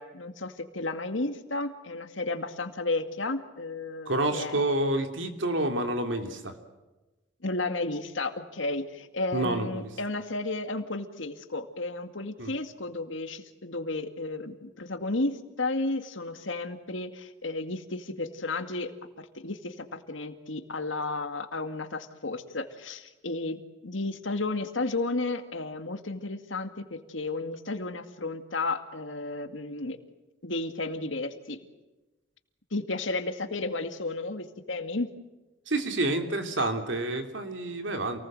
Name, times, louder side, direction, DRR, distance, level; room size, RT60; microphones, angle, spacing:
voice 1, 0.0-4.6 7.4-18.9 19.2-30.0 30.4-31.6 32.7-35.1, left 2 dB, 80° left, 8 dB, 2.2 m, -33 dB
voice 2, 4.1-6.5 9.3-9.9 12.4-12.5 35.7-38.2, right 2 dB, 70° right, 6 dB, 3.3 m, -28 dB
28.5 x 19.5 x 7.8 m, 1.1 s
head